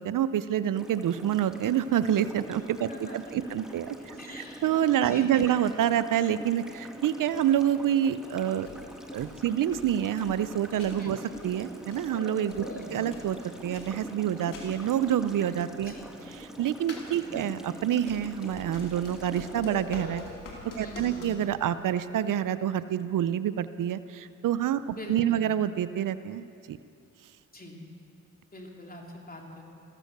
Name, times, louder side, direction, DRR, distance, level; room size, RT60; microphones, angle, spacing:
voice 1, 0.0-8.7 9.1-11.2 11.4-13.4 13.6-15.9 16.3-20.2 20.8-26.8, right 10 dB, 75° right, 14 dB, 0.6 m, -27 dB
sound 1, 0.7-19.6, equal, ahead, 1.7 m, -44 dB
voice 2, 2.9-3.5 4.0-4.7 5.0-5.4 9.4-9.5 11.0-11.1 12.7-13.0 15.8-16.1 17.1-17.4 20.8-21.3 24.9-25.4 27.5-27.8 28.5-29.6, left 1 dB, 25° left, -1 dB, 3.3 m, -44 dB
sound 2, 8.1-22.5, left 2 dB, 50° left, 2.5 m, -50 dB
sound 3, 8.6-9.5 9.7-11.1 11.3-14.2 14.5-14.8 15.0-16.1 17.8-21.3, left 3 dB, 85° left, 3.0 m, -46 dB
14.5 x 14.0 x 6.6 m, 2.6 s
cardioid pair, 55°, 32 cm